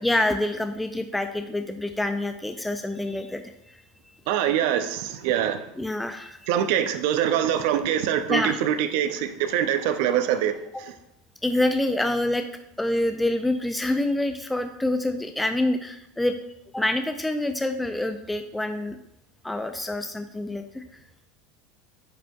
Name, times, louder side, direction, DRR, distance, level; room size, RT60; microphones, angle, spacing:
voice 1, 0.0-3.4 5.8-6.4 8.3-8.6 11.4-12.5 12.8-16.3 16.7-19.0 19.4-20.8, left 1 dB, 5° left, 0.5 m, -26 dB
voice 2, 4.3-5.6 6.5-10.9, right 10 dB, 65° right, 0.6 m, -24 dB
9.7 x 5.0 x 2.3 m
hypercardioid pair, 80°, 0 cm